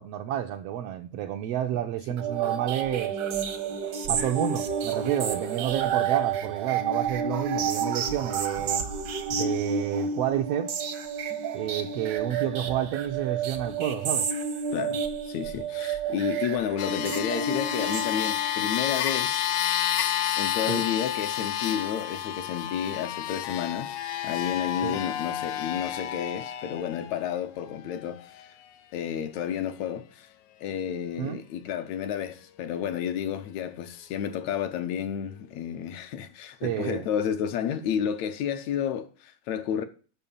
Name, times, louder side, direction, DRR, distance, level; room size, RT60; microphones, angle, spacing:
voice 1, 0.0-3.1 4.1-8.8 9.3-10.7 11.5-14.3 20.7-20.9 24.8-25.0 31.2-31.4 36.6-37.0, right 11 dB, 80° right, 1.4 m, -30 dB
sound 1, 2.2-18.6, right 6 dB, 65° right, 1.1 m, -30 dB
voice 2, 14.7-19.5 20.4-24.0 24.2-28.5 28.9-30.3 30.6-39.8, left 9 dB, 75° left, 1.9 m, -31 dB
sound 2, 16.8-27.2 28.0-28.1, left 11 dB, 90° left, 2.2 m, -30 dB
7.0 x 6.0 x 7.0 m
omnidirectional pair, 3.4 m